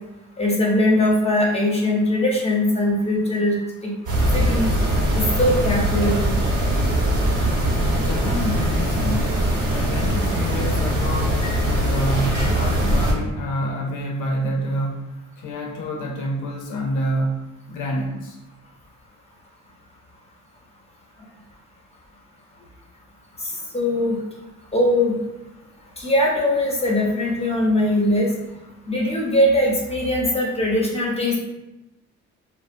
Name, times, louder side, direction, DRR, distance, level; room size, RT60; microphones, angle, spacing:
voice 1, 0.4-3.6 3.8-3.9 4.3-4.7 5.1-6.4 11.4-11.5 12.3-12.5 23.4-24.2 24.7-25.1 26.0-28.3 28.9-31.4, left 1 dB, 20° left, -3 dB, 0.7 m, -21 dB
sound 1, 4.1-13.1, equal, 80° right, 0.9 m, -21 dB
voice 2, 8.0-9.3 9.7-18.4, equal, 85° left, 0 dB, 0.6 m, -28 dB
2.4 x 2.0 x 2.5 m, 0.96 s
cardioid pair, 90°, 30 cm